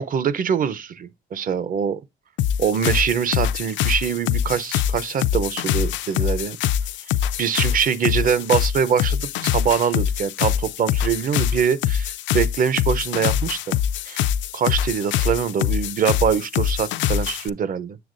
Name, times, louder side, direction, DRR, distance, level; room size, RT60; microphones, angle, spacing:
voice 1, 0.0-2.0 2.6-6.6 7.4-13.8 14.0-14.3 14.5-18.0, right 7 dB, 50° right, 0.7 m, -23 dB
sound 1, 2.4-17.5, left 10 dB, 85° left, 0.4 m, -24 dB
7.8 x 7.3 x 2.5 m
cardioid pair, 125°, 19 cm